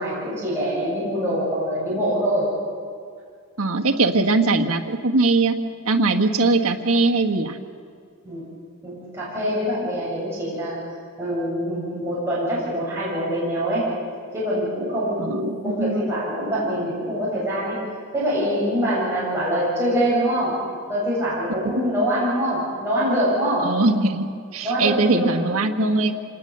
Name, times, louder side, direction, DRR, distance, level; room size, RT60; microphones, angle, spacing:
voice 1, 0.0-2.5 8.2-8.5 8.8-10.8 11.2-13.9 14.3-17.8 18.1-20.6 20.9-23.7 24.6-25.5, equal, 10° right, -8 dB, 7.4 m, -24 dB
voice 2, 3.6-5.5 5.8-7.6 15.2-16.0 23.6-24.3 24.5-26.1, right 3 dB, 85° right, 4 dB, 1.5 m, -21 dB
27.0 x 20.0 x 6.8 m, 2.2 s
head